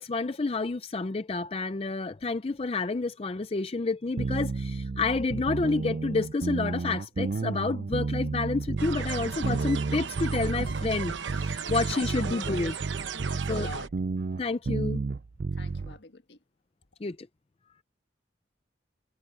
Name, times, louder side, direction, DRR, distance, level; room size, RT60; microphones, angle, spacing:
voice 1, 0.0-12.8 13.5-13.7 14.4-15.0 17.0-17.2, left 3 dB, 30° left, 0.4 m, -29 dB
sound 1, 4.2-16.0, right 4 dB, 50° right, 0.4 m, -31 dB
sound 2, 8.8-13.9, right 6 dB, 85° right, 0.9 m, -36 dB
voice 2, 11.6-13.9 15.5-16.4, left 3 dB, 70° left, 1.6 m, -47 dB
head